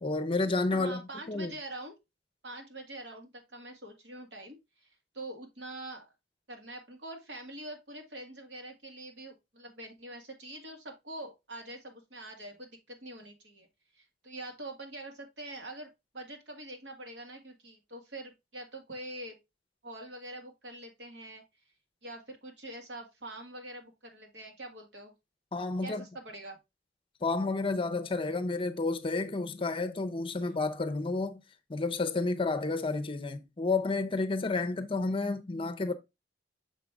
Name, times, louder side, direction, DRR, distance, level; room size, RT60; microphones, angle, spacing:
voice 1, 0.0-1.0 1.3-1.5 25.5-26.0 27.2-31.4 31.7-35.9, left 3 dB, 30° left, 0.6 m, -30 dB
voice 2, 0.7-2.0 2.4-4.9 5.1-6.1 6.5-13.7 13.9-19.4 19.8-21.4 22.0-25.1 25.8-26.6 30.4-30.6, right 1 dB, 75° right, 1.9 m, -44 dB
6.6 x 5.1 x 3.4 m
head